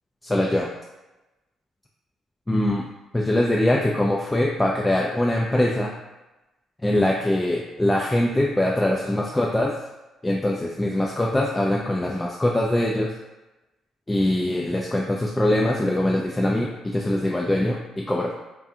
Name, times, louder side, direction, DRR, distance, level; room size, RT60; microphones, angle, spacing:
voice 1, 0.2-0.7 2.5-2.9 3.1-5.9 6.8-9.7 10.2-13.1 14.1-18.3, left 1 dB, 15° left, -2 dB, 0.3 m, -22 dB
2.4 x 2.3 x 2.7 m, 1.0 s
hypercardioid pair, 50°, 0 cm